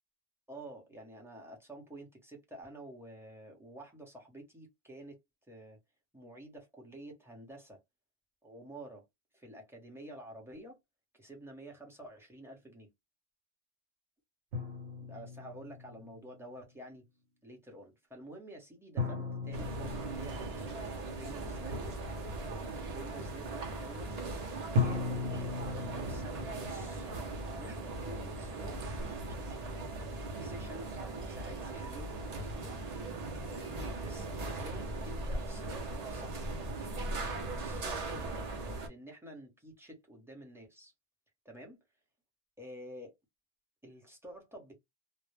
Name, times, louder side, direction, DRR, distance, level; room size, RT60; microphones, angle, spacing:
voice 1, 0.5-5.2 5.5-5.8 6.1-7.8 8.4-9.0 9.3-10.8 11.1-12.9 15.0-17.0 17.4-22.0 22.6-24.1 24.8-27.1 27.5-29.8 30.4-36.6 37.4-38.5 38.8-40.9 41.4-41.8 42.6-43.1 43.8-44.8, right 1 dB, 5° right, 0.7 m, -50 dB
sound 1, 14.5-16.3 19.0-21.8 24.8-28.6, left 3 dB, 85° right, 0.9 m, -37 dB
sound 2, 19.5-38.9, right 2 dB, 45° right, 0.6 m, -39 dB
2.1 x 2.0 x 3.1 m
omnidirectional pair, 1.1 m